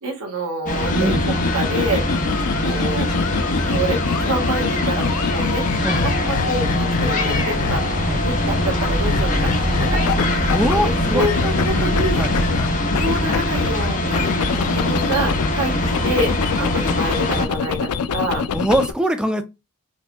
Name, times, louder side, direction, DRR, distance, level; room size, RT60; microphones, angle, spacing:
voice 1, 0.0-2.0 2.6-3.1 3.6-5.7 5.9-10.1 10.7-12.3 13.0-14.3 14.7-18.4, right 2 dB, 85° right, 1.5 m, -27 dB
sound 1, 0.7-17.5, left 1 dB, 35° left, 0.8 m, -22 dB
sound 2, 0.9-8.1 9.1-10.8 11.0-15.5 15.8-18.9, left 6 dB, 80° left, 0.4 m, -26 dB
Vehicle, 7.2-13.5, right 1 dB, 60° right, 1.6 m, -28 dB
voice 2, 10.5-11.2 12.2-12.3 18.5-19.4, right 1 dB, 5° right, 0.3 m, -21 dB
4.5 x 2.6 x 2.2 m
head